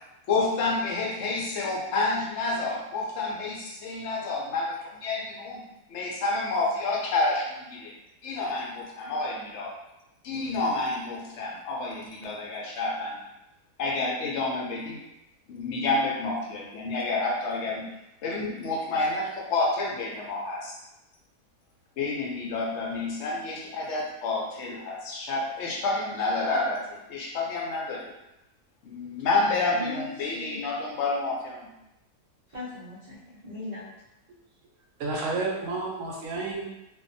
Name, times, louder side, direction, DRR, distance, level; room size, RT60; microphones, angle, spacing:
voice 1, 0.3-5.6 5.9-7.9 8.2-9.7 10.2-13.2 13.8-15.0 15.5-17.9 18.2-20.7 22.0-28.1 28.8-31.7, left 3 dB, 65° left, -2 dB, 0.7 m, -29 dB
voice 2, 29.7-30.6 32.5-33.9, left 2 dB, 55° right, -10 dB, 0.4 m, -38 dB
voice 3, 35.0-36.7, right 3 dB, 70° right, -1 dB, 0.8 m, -31 dB
2.6 x 2.3 x 2.5 m, 0.90 s
omnidirectional pair, 1.7 m